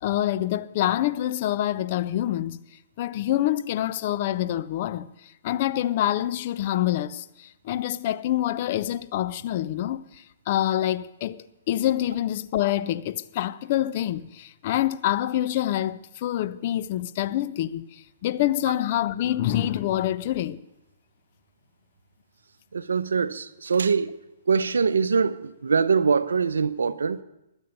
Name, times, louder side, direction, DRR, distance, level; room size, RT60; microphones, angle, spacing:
voice 1, 0.0-2.6 3.0-5.1 5.4-20.6, left 13 dB, 50° left, 0.6 m, -26 dB
voice 2, 22.7-24.1 24.5-27.2, right 5 dB, 75° right, 0.6 m, -23 dB
22.5 x 8.0 x 5.4 m
figure-of-eight pair, 120°, 0 cm